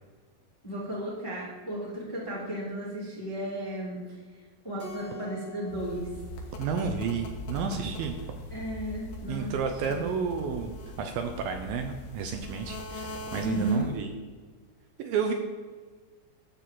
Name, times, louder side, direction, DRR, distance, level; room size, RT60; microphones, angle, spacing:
voice 1, 0.6-4.0 4.6-6.1 8.5-9.5 9.9-10.2 13.4-13.9, equal, 10° left, -5 dB, 1.5 m, -34 dB
Keyboard (musical), 4.8-7.4, left 2 dB, 20° right, 2.3 m, -48 dB
sound 1, 5.7-14.1, left 1 dB, 75° left, 3.0 m, -41 dB
voice 2, 6.6-8.1 9.3-10.7 11.0-14.1 15.0-15.3, right 6 dB, 75° right, 5 dB, 2.3 m, -31 dB
12.0 x 4.2 x 7.5 m, 1.5 s
omnidirectional pair, 4.6 m